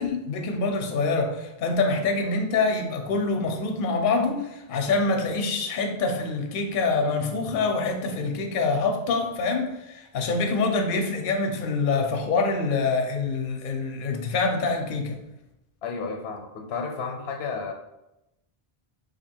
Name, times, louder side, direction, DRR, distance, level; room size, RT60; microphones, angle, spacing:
voice 1, 0.0-15.2, left 3 dB, 60° left, 3 dB, 0.7 m, -25 dB
voice 2, 15.8-17.7, left 5 dB, 90° left, 3 dB, 0.8 m, -32 dB
3.0 x 2.7 x 4.3 m, 0.93 s
omnidirectional pair, 1.0 m